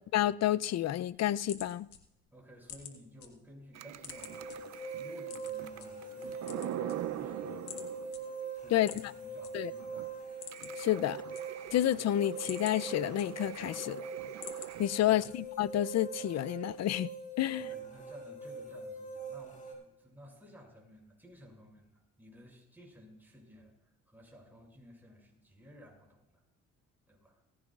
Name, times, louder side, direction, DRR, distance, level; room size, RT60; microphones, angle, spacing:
voice 1, 0.1-1.9 8.7-9.1 9.5-9.7 10.8-11.2 11.7-14.0 14.8-17.1 17.4-17.7, left 12 dB, 60° left, 0.5 m, -30 dB
sound 1, 1.2-3.3 3.6-4.6 5.2-5.9 6.3-7.3 7.7-7.9 8.1-8.2 8.8-9.5 9.8-9.9 10.2-10.9 11.1-11.8 12.2-13.7 14.1-14.7 15.2-15.7, left 8 dB, 75° left, 1.9 m, -47 dB
voice 2, 2.3-8.1 8.5-10.2 14.9-15.2 17.6-26.4 27.1-27.4, equal, 5° right, 6.4 m, -55 dB
sound 2, 3.7-8.5 9.0-9.1 9.4-9.5 9.8-14.9, right 12 dB, 60° right, 0.6 m, -43 dB
sound 3, 4.1-19.7, right 4 dB, 25° left, 5.9 m, -43 dB
18.0 x 16.0 x 2.5 m
cardioid pair, 90°, 30 cm